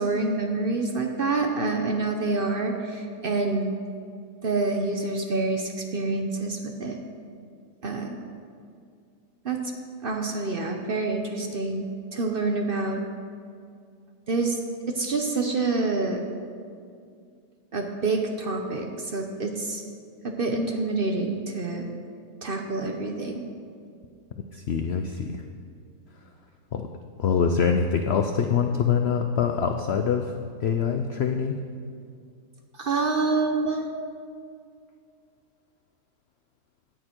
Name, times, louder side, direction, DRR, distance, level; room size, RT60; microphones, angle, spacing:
voice 1, 0.0-3.7 4.4-7.0 7.8-8.2 9.4-9.7 10.0-11.8 12.1-13.0 14.3-14.6 14.9-16.2 17.7-19.8 20.2-21.9 22.4-23.4 32.8-33.9, right 3 dB, 45° right, 3 dB, 0.7 m, -27 dB
voice 2, 24.5-25.4 26.7-26.9 27.2-31.6, left 6 dB, 80° left, 5 dB, 0.5 m, -24 dB
17.0 x 6.6 x 4.5 m, 2.3 s
omnidirectional pair, 1.8 m